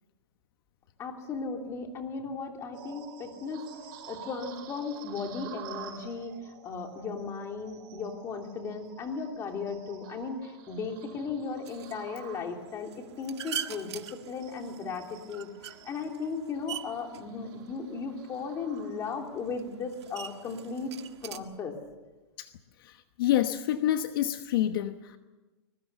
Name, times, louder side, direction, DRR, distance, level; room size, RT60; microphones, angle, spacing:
voice 1, 1.0-3.7 4.1-21.0 21.2-21.7, left 4 dB, 20° left, 3 dB, 3.1 m, -36 dB
sound 1, 2.7-19.4 19.8-20.1 20.6-20.8, right 8 dB, 50° right, 6.3 m, -50 dB
sound 2, 11.6-21.4, right 10 dB, 85° right, 1.9 m, -44 dB
voice 2, 22.8-25.2, left 12 dB, 55° left, 8 dB, 1.1 m, -28 dB
24.5 x 21.5 x 6.9 m, 1.1 s
supercardioid pair, 160°, 14 cm